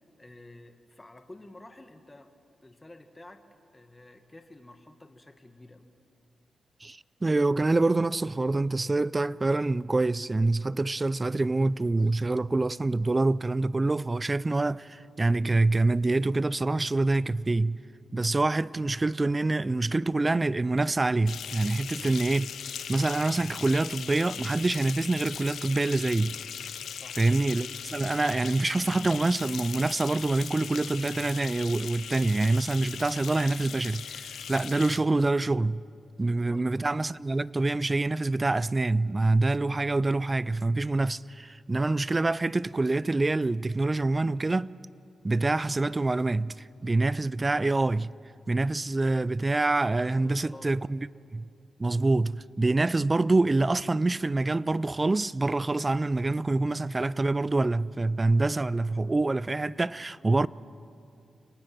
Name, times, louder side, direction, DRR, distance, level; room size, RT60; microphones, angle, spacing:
voice 1, 0.2-2.3 2.6-3.4 3.7-5.9 18.2-18.4 27.0-27.2 36.2-36.6 49.9-50.7 60.0-60.5, left 2 dB, 20° left, 1.6 m, -51 dB
voice 2, 6.8-17.8 18.1-22.5 22.9-26.4 27.2-35.8 36.2-44.7 45.2-48.1 48.5-51.0 51.3-51.4 51.8-60.5, right 2 dB, 30° right, 0.4 m, -26 dB
sound 1, 21.3-35.0, left 8 dB, 80° left, 0.6 m, -39 dB
29.5 x 19.0 x 6.0 m
cardioid pair, 55°, 0 cm